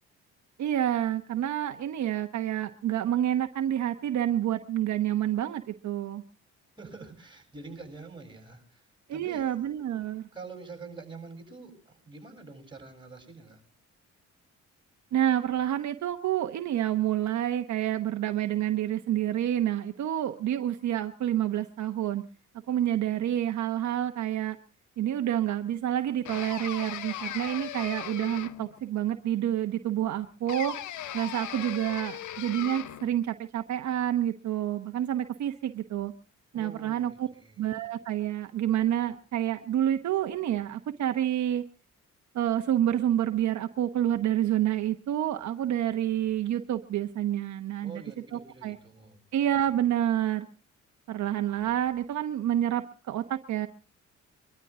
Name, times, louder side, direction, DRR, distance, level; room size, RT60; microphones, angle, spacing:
voice 1, 0.6-6.2 9.1-10.2 15.1-22.2 22.7-24.6 25.0-30.7 31.1-36.1 36.5-37.3 37.6-41.6 42.3-48.0 48.3-48.8 49.3-50.5 51.1-53.7, right 11 dB, 70° right, 7 dB, 1.1 m, -28 dB
voice 2, 6.8-9.5 10.3-13.6 36.5-37.6 47.8-49.2, right 4 dB, 15° right, 2 dB, 7.6 m, -46 dB
sound 1, 26.3-28.8 30.5-33.1, left 11 dB, 75° left, 0.9 m, -38 dB
23.5 x 13.0 x 3.7 m, 0.37 s
cardioid pair, 90°, 30 cm